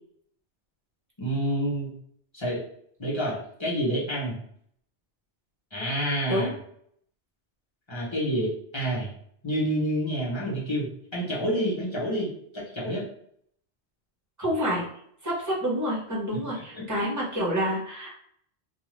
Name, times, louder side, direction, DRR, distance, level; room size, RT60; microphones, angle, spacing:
voice 1, 1.2-1.9 2.3-2.6 3.0-4.4 5.7-6.5 7.9-9.1 9.4-13.0 16.7-16.8, equal, 25° left, -7 dB, 1.0 m, -28 dB
voice 2, 14.4-14.8 15.2-18.1, equal, 15° right, -5 dB, 0.9 m, -28 dB
2.7 x 2.4 x 3.1 m, 0.67 s
omnidirectional pair, 1.1 m